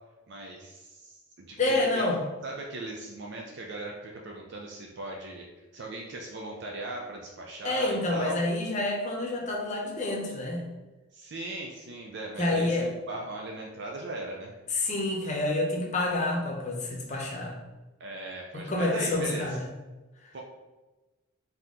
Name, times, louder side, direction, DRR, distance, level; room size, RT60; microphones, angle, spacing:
voice 1, 0.3-2.0 2.4-5.5 5.7-8.4 11.1-14.5 18.0-19.6 20.3-20.4, right 2 dB, 55° right, 0 dB, 0.5 m, -38 dB
voice 2, 1.6-2.2 7.6-10.6 12.4-12.9 14.7-17.5 18.5-19.6, left 2 dB, 35° left, -1 dB, 0.7 m, -28 dB
4.0 x 2.8 x 3.6 m, 1.1 s
head